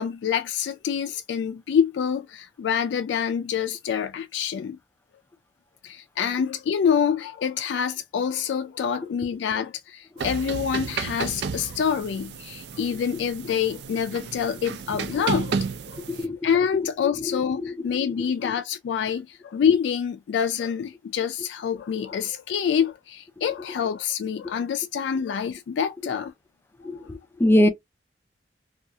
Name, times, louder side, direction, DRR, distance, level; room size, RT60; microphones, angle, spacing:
voice 1, 0.0-4.8 5.8-15.6 15.9-16.0 16.4-26.3 27.0-27.1, left 7 dB, 85° left, 0.3 m, -26 dB
sound 1, 10.2-16.3, right 5 dB, 65° right, 0.4 m, -32 dB
voice 2, 17.2-17.7 18.2-18.5 26.8-27.7, left 1 dB, 15° left, 0.4 m, -23 dB
2.4 x 2.3 x 2.7 m
head